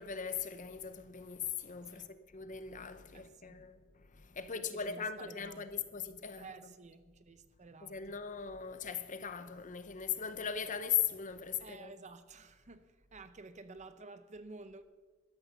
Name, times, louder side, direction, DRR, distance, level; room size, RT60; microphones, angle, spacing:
voice 1, 0.0-6.5 7.8-11.9, left 8 dB, 35° left, 0.8 m, -39 dB
voice 2, 3.1-3.7 4.4-5.9 6.4-8.1 11.6-14.8, right 3 dB, 35° right, 0.7 m, -52 dB
12.5 x 10.5 x 7.1 m
head